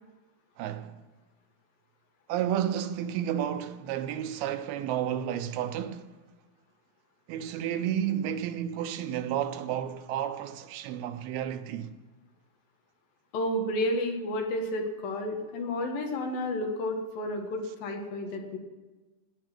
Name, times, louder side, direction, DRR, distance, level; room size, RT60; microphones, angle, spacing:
voice 1, 0.6-1.0 2.3-6.1 7.3-11.9, right 10 dB, 85° right, 2.8 m, -31 dB
voice 2, 13.3-18.6, left 1 dB, 70° left, 3.5 m, -31 dB
17.5 x 10.5 x 6.2 m
omnidirectional pair, 4.3 m